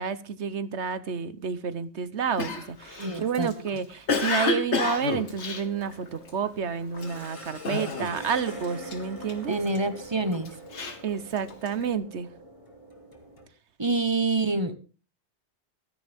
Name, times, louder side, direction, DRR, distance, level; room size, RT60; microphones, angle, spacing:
voice 1, 0.0-9.6 11.0-12.3, right 6 dB, 75° right, 14 dB, 1.3 m, -30 dB
Cough, 2.4-6.5 6.9-7.3 7.6-8.4 8.6-9.8 10.3-11.8, left 4 dB, 75° left, 1.9 m, -29 dB
voice 2, 3.0-3.5 9.5-10.5 13.8-14.8, right 3 dB, 25° right, 11 dB, 1.2 m, -27 dB
sound 1, 4.9-13.5, right 1 dB, 30° left, 2.7 m, -44 dB
16.0 x 13.5 x 3.6 m, 0.34 s
omnidirectional pair, 1.2 m